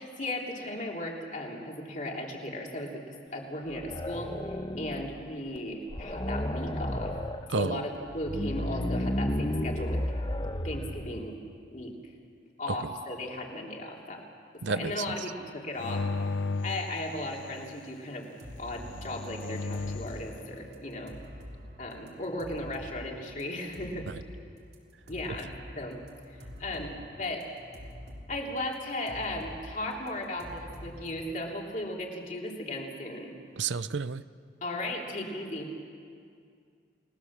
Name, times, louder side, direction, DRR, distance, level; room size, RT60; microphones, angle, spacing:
voice 1, 0.0-3.0 3.3-7.1 7.5-10.0 10.4-11.4 11.7-11.9 12.6-14.2 14.7-16.0 16.6-18.3 18.6-21.1 21.8-24.1 25.1-26.0 26.6-27.5 28.3-33.3 34.6-35.7, left 1 dB, 40° left, -1 dB, 3.3 m, -36 dB
sound 1, 3.7-5.2 5.6-5.7 5.9-7.5 8.1-11.2, left 1 dB, 25° left, 1.0 m, -32 dB
voice 2, 7.5-7.8 12.7-12.8 14.6-15.0 33.6-34.2, right 4 dB, 75° right, 15 dB, 0.6 m, -30 dB
sound 2, 15.8-17.7 18.7-20.2, left 3 dB, 85° left, 0.6 m, -35 dB
sound 3, 18.2-19.0 19.4-23.0 23.2-24.3 24.7-24.8 25.1-28.3 28.6-29.6 29.9-31.2, equal, 60° right, 3.7 m, -46 dB
30.0 x 19.0 x 7.4 m, 2.3 s
head